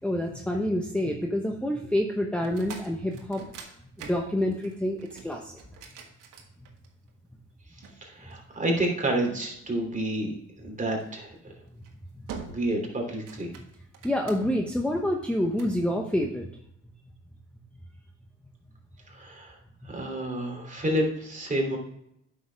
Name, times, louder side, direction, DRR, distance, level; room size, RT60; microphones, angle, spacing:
voice 1, 0.0-3.4 4.0-5.6 11.7-11.8 12.1-12.3 14.0-16.5, left 1 dB, 5° left, 1 dB, 0.9 m, -28 dB
sound 1, 2.4-7.1 7.8-9.1 10.9-11.2 11.7-11.9 12.3-12.8 13.1-14.7 15.2-15.8, right 6 dB, 90° right, 1.5 m, -45 dB
voice 2, 8.0-10.3 10.6-11.3 12.5-13.5 19.1-19.6 19.8-21.8, right 1 dB, 25° right, 1 dB, 3.0 m, -29 dB
9.1 x 6.7 x 3.4 m, 0.75 s
cardioid pair, 90°, 30 cm